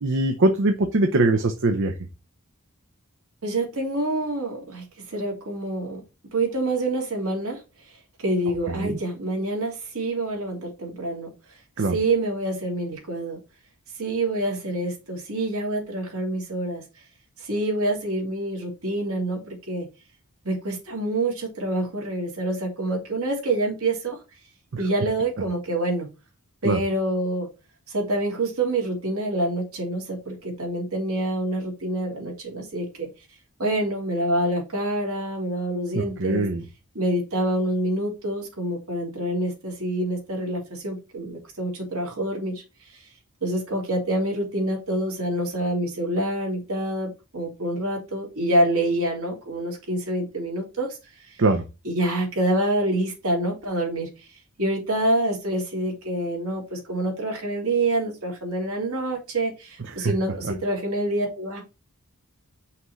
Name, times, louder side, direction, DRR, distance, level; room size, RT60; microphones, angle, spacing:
voice 1, 0.0-1.9 8.7-9.0 11.8-12.0 24.7-24.8 26.6-26.8 35.9-36.6 51.4-51.6 60.0-60.1 60.4-60.5, right 2 dB, 55° right, 5 dB, 0.7 m, -22 dB
voice 2, 3.4-6.0 6.3-7.6 8.2-11.3 11.8-13.4 14.0-16.8 17.4-19.9 20.4-24.2 24.8-26.1 26.6-27.5 27.9-33.1 33.6-36.4 36.9-42.6 42.9-43.0 43.4-51.0 51.2-51.4 51.8-54.3 54.6-61.6, right 1 dB, 75° right, -1 dB, 2.7 m, -26 dB
5.8 x 3.1 x 5.7 m, 0.29 s
head